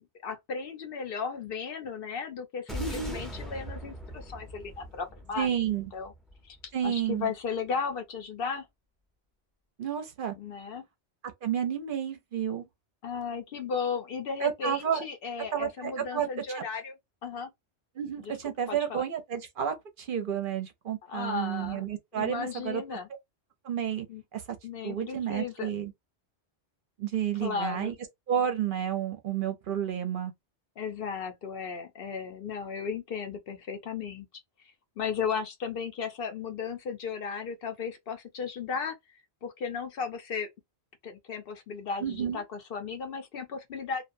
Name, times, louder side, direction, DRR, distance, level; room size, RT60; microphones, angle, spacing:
voice 1, 0.2-5.5 5.9-6.1 6.4-6.6 6.8-8.7 10.3-10.8 13.0-17.0 17.2-17.5 18.2-18.3 18.7-19.0 21.1-21.8 22.1-23.1 24.1-24.2 24.6-25.7 27.4-27.9 30.8-34.3 35.0-39.0 39.4-40.5 41.0-44.0, left 6 dB, 60° left, 0.8 m, -35 dB
sound 1, 2.7-7.1, equal, ahead, 0.6 m, -41 dB
voice 2, 2.8-3.2 5.4-5.9 6.7-7.3 9.8-10.3 11.4-12.7 14.4-15.0 15.5-16.3 16.5-16.6 18.0-22.8 23.6-24.1 24.3-24.4 24.8-25.9 27.0-27.9 28.3-30.3 42.0-42.4, right 9 dB, 60° right, 0.7 m, -31 dB
2.5 x 2.1 x 2.5 m
omnidirectional pair, 1.1 m